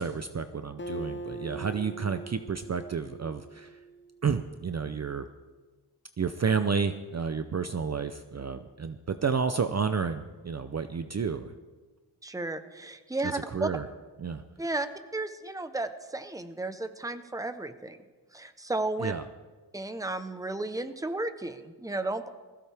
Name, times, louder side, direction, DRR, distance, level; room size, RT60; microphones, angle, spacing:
voice 1, 0.0-3.7 4.2-5.2 6.2-11.5 13.2-13.9 14.2-14.4 19.0-19.2, right 6 dB, 40° right, 10 dB, 0.6 m, -31 dB
Acoustic guitar, 0.8-4.4, right 3 dB, 30° left, 0.8 m, -41 dB
voice 2, 12.2-13.7 14.6-14.9 15.1-18.0 18.3-19.1 19.7-22.3, right 2 dB, 10° right, 9 dB, 0.8 m, -33 dB
20.5 x 15.5 x 3.4 m, 1.3 s
wide cardioid pair, 130°, 41 cm